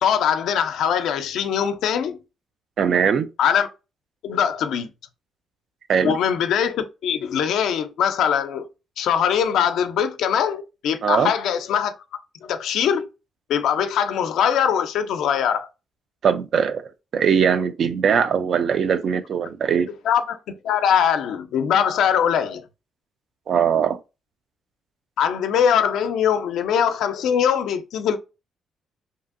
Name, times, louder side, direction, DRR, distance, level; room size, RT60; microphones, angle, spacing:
voice 1, 0.0-2.2 3.4-3.7 4.2-4.9 6.0-8.7 9.0-11.9 12.4-13.1 13.5-15.7 20.0-20.4 20.6-22.6 25.2-28.2, left 8 dB, 80° left, 0.4 m, -22 dB
voice 2, 2.8-3.3 5.9-6.2 11.0-11.3 16.2-16.8 17.1-19.9 23.5-24.0, right 7 dB, 60° right, 0.3 m, -20 dB
2.7 x 2.6 x 2.4 m
cardioid pair, 90°, 0 cm